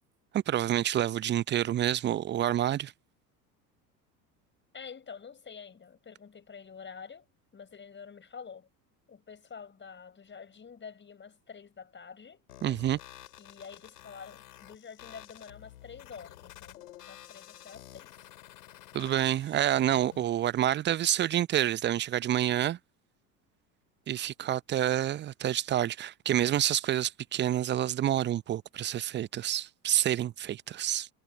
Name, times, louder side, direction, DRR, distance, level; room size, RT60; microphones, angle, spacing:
voice 1, 0.3-2.9 12.6-13.0 18.9-22.8 24.1-31.1, right 12 dB, 25° right, 0.6 m, -28 dB
voice 2, 4.7-8.7 9.1-12.4 13.4-18.2, left 6 dB, 25° left, 5.3 m, -48 dB
sound 1, 12.5-20.5, left 13 dB, 70° left, 4.5 m, -51 dB
figure-of-eight pair, 70°, 48 cm